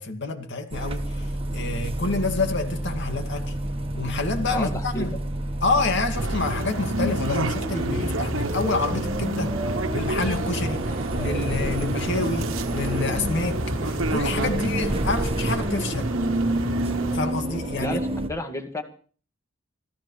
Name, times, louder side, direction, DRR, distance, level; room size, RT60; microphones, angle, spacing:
voice 1, 0.0-3.5 4.0-5.2 5.6-9.5 9.9-16.2 17.1-18.0, left 3 dB, 60° left, 6 dB, 2.3 m, -28 dB
sound 1, 0.7-18.3, right 1 dB, 30° right, 1.4 m, -29 dB
voice 2, 4.5-5.1 17.8-18.8, left 1 dB, 15° left, 5 dB, 2.1 m, -31 dB
sound 2, 6.1-17.2, right 2 dB, 75° right, 1.3 m, -29 dB
25.5 x 15.0 x 3.3 m, 0.43 s
head